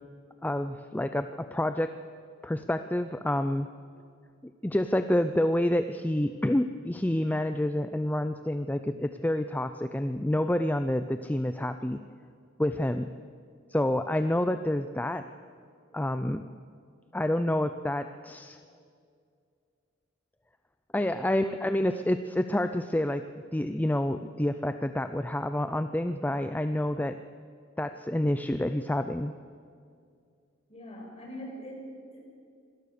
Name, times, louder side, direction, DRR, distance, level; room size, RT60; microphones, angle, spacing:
voice 1, 0.4-1.9 2.4-3.7 4.4-12.0 12.6-13.1 13.7-15.3 15.9-16.4 17.1-18.6 20.9-23.2 23.5-27.2 27.8-29.3, left 1 dB, 10° left, 10 dB, 0.5 m, -28 dB
voice 2, 30.7-32.3, equal, 30° left, 0 dB, 5.4 m, -43 dB
25.5 x 18.5 x 6.8 m, 2.3 s
head